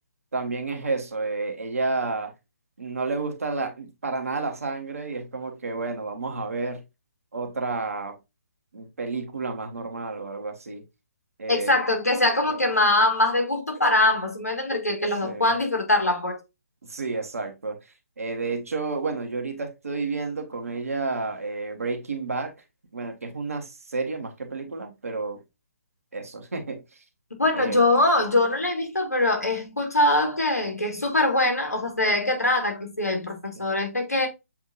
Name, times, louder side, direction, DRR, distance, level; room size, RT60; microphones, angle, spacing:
voice 1, 0.3-2.3 2.8-6.8 7.3-8.2 8.7-10.8 11.4-11.8 12.5-12.6 15.2-15.5 16.8-17.8 18.2-22.5 22.9-25.4 26.1-27.0 27.5-27.8 33.5-33.6, right 3 dB, 65° right, 1.2 m, -30 dB
voice 2, 11.5-16.4 27.4-34.3, left 2 dB, 80° left, 1.6 m, -23 dB
7.1 x 2.7 x 2.4 m
figure-of-eight pair, 140°, 8 cm